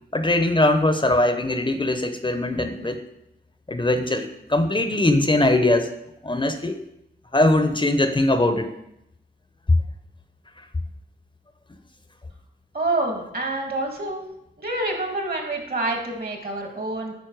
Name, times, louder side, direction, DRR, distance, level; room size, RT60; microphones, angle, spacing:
voice 1, 0.1-3.0 3.7-5.9 6.2-6.8 7.3-8.7, left 1 dB, 25° left, 8 dB, 0.7 m, -21 dB
voice 2, 12.7-14.2 14.6-17.1, right 2 dB, 55° right, 3 dB, 1.8 m, -27 dB
9.3 x 4.3 x 4.6 m, 0.83 s
cardioid pair, 60°, 18 cm